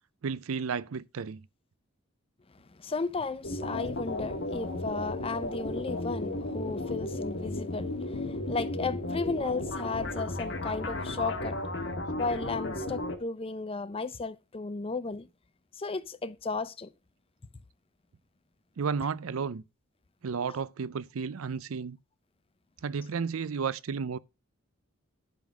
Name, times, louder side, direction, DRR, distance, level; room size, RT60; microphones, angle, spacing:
voice 1, 0.2-1.5 18.8-19.6 20.2-22.0 22.8-24.2, right 5 dB, 85° right, 0.5 m, -32 dB
voice 2, 2.8-11.6 12.2-15.3 15.8-16.9, left 3 dB, 25° left, 0.5 m, -34 dB
sound 1, 3.4-13.2, left 2 dB, 60° left, 1.6 m, -34 dB
10.5 x 3.9 x 6.2 m
head